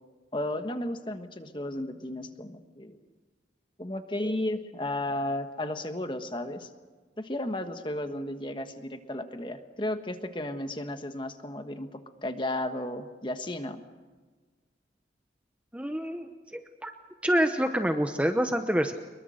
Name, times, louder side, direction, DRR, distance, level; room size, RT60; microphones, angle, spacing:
voice 1, 0.3-3.0 3.8-6.7 7.2-13.8, left 1 dB, 25° left, 7 dB, 1.4 m, -34 dB
voice 2, 15.7-16.9 17.2-18.9, equal, 5° right, 6 dB, 0.8 m, -27 dB
24.0 x 22.5 x 6.5 m, 1.4 s
head